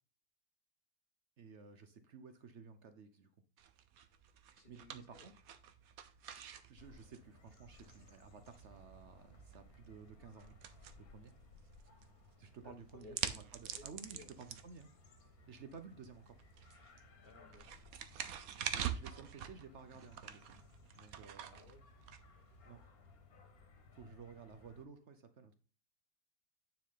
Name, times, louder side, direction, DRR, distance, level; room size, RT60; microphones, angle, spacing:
voice 1, 1.4-3.3 4.7-5.3 6.7-10.6 11.0-11.3 12.4-14.9 15.5-16.4 18.6-20.6 20.9-21.6 22.6-22.8 23.9-25.5, right 5 dB, 55° right, 9 dB, 1.0 m, -54 dB
sound 1, 3.6-22.8, right 9 dB, 75° right, 1.2 m, -47 dB
voice 2, 4.6-5.3 12.6-13.2 13.7-14.3 17.2-17.7 21.5-21.8, left 3 dB, 40° left, 4 dB, 1.5 m, -58 dB
sound 2, 6.8-24.9, left 3 dB, 85° left, 1.9 m, -62 dB
9.6 x 4.7 x 3.7 m, 0.38 s
omnidirectional pair, 1.5 m